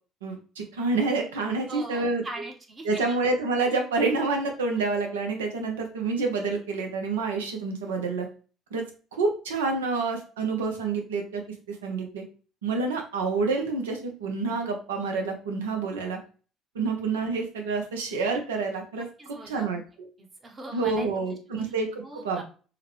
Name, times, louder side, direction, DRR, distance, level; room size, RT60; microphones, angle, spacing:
voice 1, 0.2-2.2 2.8-8.3 8.7-8.8 9.1-12.2 12.6-16.2 16.7-19.8 20.7-22.4, right 3 dB, 85° right, 3 dB, 0.6 m, -28 dB
voice 2, 1.7-3.0 19.2-19.7 20.2-21.1 21.5-21.8 22.0-22.4, right 1 dB, 35° right, 3 dB, 0.9 m, -40 dB
3.8 x 2.1 x 3.0 m, 0.37 s
hypercardioid pair, 60°, 0 cm